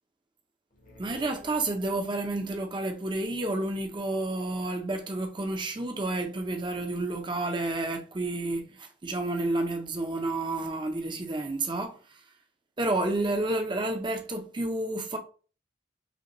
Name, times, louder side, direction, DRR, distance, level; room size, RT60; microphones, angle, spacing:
sound 1, 0.7-2.3, equal, 45° left, 0.9 m, -52 dB
voice 1, 1.0-12.2 12.8-15.2, right 2 dB, 25° right, 0.5 m, -30 dB
5.1 x 2.2 x 2.9 m
head